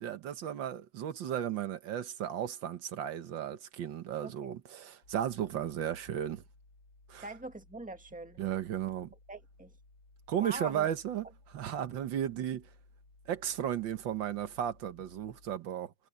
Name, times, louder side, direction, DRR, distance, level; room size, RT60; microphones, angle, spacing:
voice 1, 0.0-6.4 7.1-7.2 8.4-9.1 10.3-11.2 11.5-12.7 13.3-15.9, right 10 dB, 80° right, 1.8 m, -35 dB
voice 2, 4.2-4.6 7.2-8.4 9.3-9.7 10.4-10.9, right 2 dB, 5° right, 1.7 m, -43 dB
sound 1, 5.0-15.6, left 3 dB, 85° left, 5.9 m, -61 dB
omnidirectional pair, 2.0 m